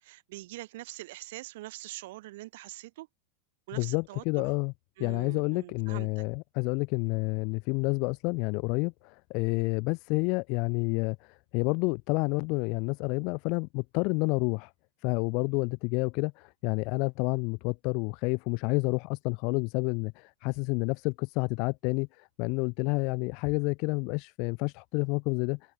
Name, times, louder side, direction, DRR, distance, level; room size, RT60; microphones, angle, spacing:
voice 1, 0.0-3.1 3.7-4.4 5.0-6.2, right 18 dB, 50° right, 2.7 m, -43 dB
voice 2, 3.7-4.7 5.0-14.7 15.0-25.6, left 31 dB, 45° left, 1.1 m, -29 dB
open air
figure-of-eight pair, 90°, 0 cm